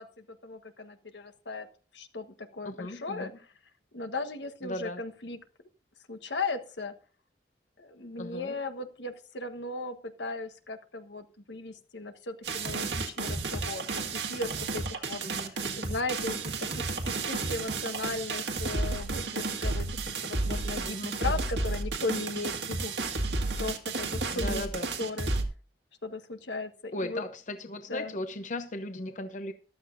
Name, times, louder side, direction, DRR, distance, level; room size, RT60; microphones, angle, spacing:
voice 1, 0.0-1.7 1.9-3.5 3.9-5.4 6.1-6.9 7.8-15.2 15.8-16.7 17.0-22.9 23.6-24.7 25.0-25.3 26.0-27.2 27.9-28.1, left 3 dB, 85° left, 1.4 m, -37 dB
voice 2, 2.6-3.3 4.6-5.0 8.2-8.6 15.2-15.9 20.8-21.3 24.3-24.9 26.9-29.5, left 1 dB, 45° left, 0.8 m, -37 dB
sound 1, 12.4-25.4, right 3 dB, 85° right, 1.9 m, -32 dB
14.5 x 12.0 x 2.6 m
head